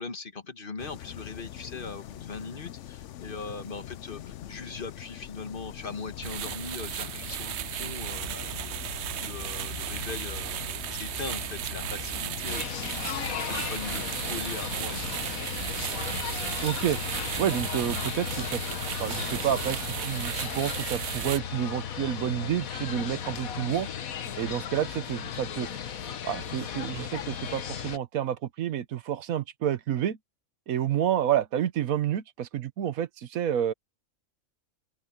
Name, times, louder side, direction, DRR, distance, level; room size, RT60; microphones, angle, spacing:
voice 1, 0.0-8.8 9.2-15.4, left 4 dB, 40° left, 1.6 m, -40 dB
sound 1, 0.8-19.8, left 12 dB, 65° left, 0.9 m, -42 dB
sound 2, 6.2-21.4, right 11 dB, 65° right, 0.8 m, -35 dB
sound 3, 12.5-28.0, left 8 dB, 85° left, 1.5 m, -36 dB
voice 2, 16.6-17.0 17.4-18.6 19.0-23.9 24.4-25.7 26.2-30.2 30.7-33.7, right 10 dB, 90° right, 1.3 m, -29 dB
open air
omnidirectional pair, 1.4 m